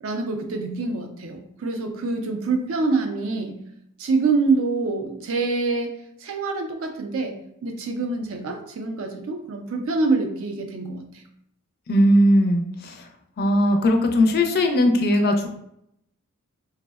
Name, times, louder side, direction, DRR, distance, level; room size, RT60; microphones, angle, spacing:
voice 1, 0.0-3.5 4.0-5.9 6.2-11.2, right 3 dB, 65° right, 5 dB, 0.4 m, -26 dB
voice 2, 11.9-13.0 13.4-15.5, left 1 dB, 45° left, 4 dB, 0.4 m, -19 dB
3.4 x 2.0 x 2.3 m, 0.75 s
head